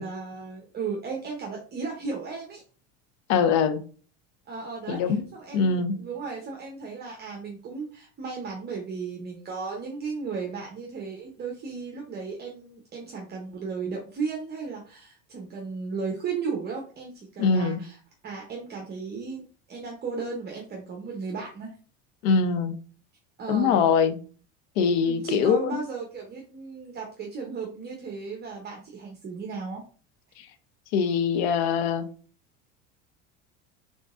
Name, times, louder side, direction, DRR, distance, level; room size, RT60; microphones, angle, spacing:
voice 1, 0.0-2.6 4.5-18.0 18.2-21.7 23.4-23.9 25.0-29.8, right 5 dB, 30° right, 0.8 m, -35 dB
voice 2, 3.3-3.8 4.9-5.2 5.5-6.0 17.4-17.8 22.2-22.7 23.5-24.2 24.8-25.8 30.4-30.5 30.9-32.1, left 6 dB, 70° left, 0.7 m, -23 dB
3.7 x 3.6 x 2.5 m
supercardioid pair, 110°, 34 cm